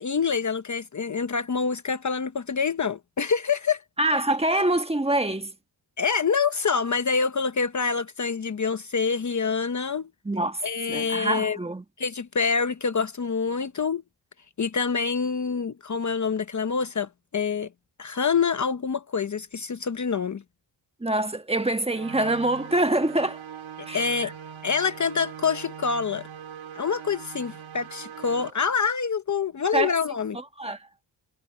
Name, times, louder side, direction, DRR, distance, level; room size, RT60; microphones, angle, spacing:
voice 1, 0.0-3.8 6.0-10.1 10.6-11.6 12.0-14.0 14.6-17.7 18.0-20.4 23.8-24.3 24.6-26.3 26.7-30.4, left 5 dB, 40° left, 0.9 m, -26 dB
voice 2, 4.0-5.5 10.2-11.8 21.0-23.4 23.9-24.3 29.7-29.9 30.3-30.9, right 1 dB, 15° right, 1.4 m, -25 dB
sound 1, 21.9-28.5, right 8 dB, 85° right, 2.5 m, -41 dB
wide cardioid pair, 135°, 46 cm